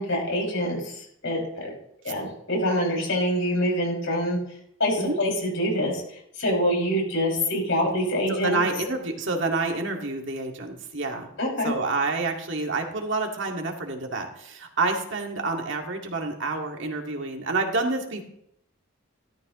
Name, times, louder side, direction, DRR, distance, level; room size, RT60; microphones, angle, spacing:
voice 1, 0.0-1.7 2.0-4.4 4.8-6.0 6.4-8.6 11.4-11.7, equal, 60° left, -2 dB, 6.3 m, -25 dB
voice 2, 8.3-11.3 11.6-18.2, right 3 dB, 60° right, 2 dB, 2.1 m, -28 dB
17.5 x 13.0 x 3.1 m, 0.74 s
head